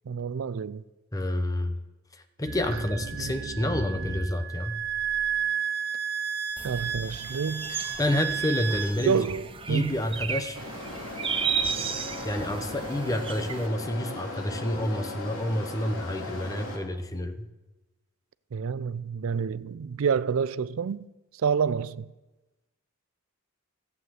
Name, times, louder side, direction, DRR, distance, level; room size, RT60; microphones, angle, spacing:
voice 1, 0.1-0.8 3.2-3.3 6.6-7.9 9.0-10.0 18.5-21.1 21.3-22.1, right 6 dB, 75° right, 0.4 m, -28 dB
voice 2, 1.1-1.8 2.1-4.8 8.0-9.2 9.7-10.6 12.2-17.5, left 1 dB, 15° left, 0.8 m, -29 dB
sound 1, 2.4-8.8, right 7 dB, 50° right, 2.7 m, -32 dB
sound 2, 6.6-13.7, right 6 dB, 25° right, 0.6 m, -34 dB
sound 3, 10.6-16.8, left 2 dB, 70° left, 3.3 m, -37 dB
14.5 x 8.2 x 7.8 m
head